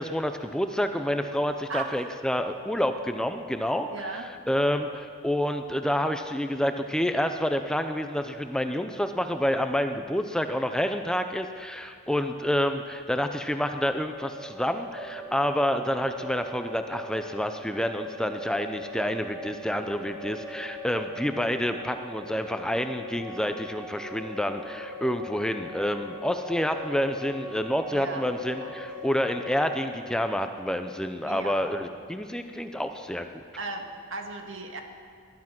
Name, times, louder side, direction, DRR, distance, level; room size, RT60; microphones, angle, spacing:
voice 1, 0.0-33.4, equal, 5° left, 7 dB, 0.5 m, -28 dB
voice 2, 1.7-2.1 3.9-4.3 27.9-28.2 28.5-28.7 31.2-31.7 33.5-34.8, right 3 dB, 70° right, 4 dB, 1.8 m, -36 dB
sound 1, 13.7-31.5, left 1 dB, 20° right, 4.0 m, -41 dB
19.5 x 12.0 x 6.0 m, 2.2 s
head